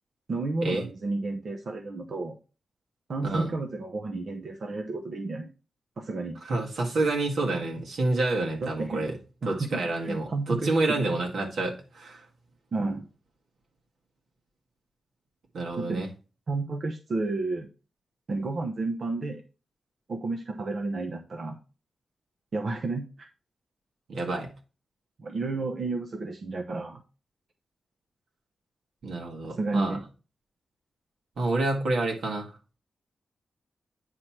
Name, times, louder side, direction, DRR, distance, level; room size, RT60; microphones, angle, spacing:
voice 1, 0.3-2.4 3.1-5.5 6.0-6.4 8.6-9.0 9.4-10.7 12.7-13.1 15.8-16.0 16.5-17.7 18.3-19.4 20.1-21.6 22.5-23.3 25.2-27.0 29.4-30.0, right 3 dB, 55° right, 0.8 m, -31 dB
voice 2, 6.4-9.2 9.5-12.2 15.5-16.1 24.1-24.5 29.0-30.0 31.4-32.6, right 2 dB, 85° right, 2.0 m, -28 dB
9.4 x 3.2 x 5.8 m
wide cardioid pair, 120°, 0 cm